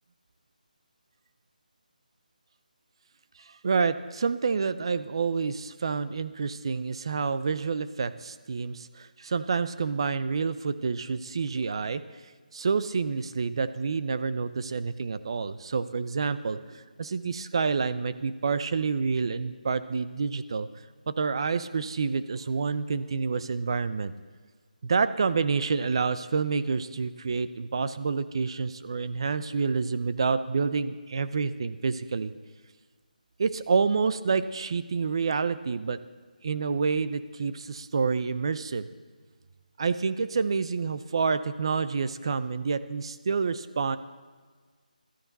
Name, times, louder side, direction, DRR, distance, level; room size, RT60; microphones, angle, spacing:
voice 1, 3.5-12.0 12.5-20.7 21.1-24.1 24.8-32.3 33.4-36.0 36.4-38.8 39.8-44.0, right 5 dB, 35° right, 13 dB, 0.6 m, -28 dB
16.0 x 13.0 x 4.0 m, 1.5 s
figure-of-eight pair, 175°, 5 cm